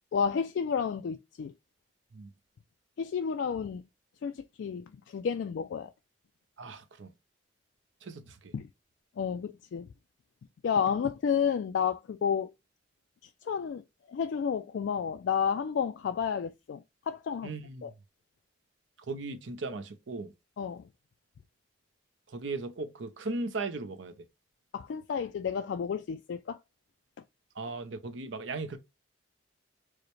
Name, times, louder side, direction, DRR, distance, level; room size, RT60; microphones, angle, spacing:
voice 1, 0.1-1.5 3.0-3.8 4.2-5.9 8.5-8.7 9.2-9.9 10.6-12.5 13.2-13.8 14.1-17.5 17.8-17.9 20.6-20.9 24.7-26.6, left 7 dB, 65° left, 0.3 m, -31 dB
voice 2, 6.6-7.1 8.0-8.5 17.4-17.9 19.1-20.3 22.3-24.1 27.5-28.8, right 3 dB, 75° right, 0.7 m, -37 dB
4.8 x 2.1 x 3.1 m
head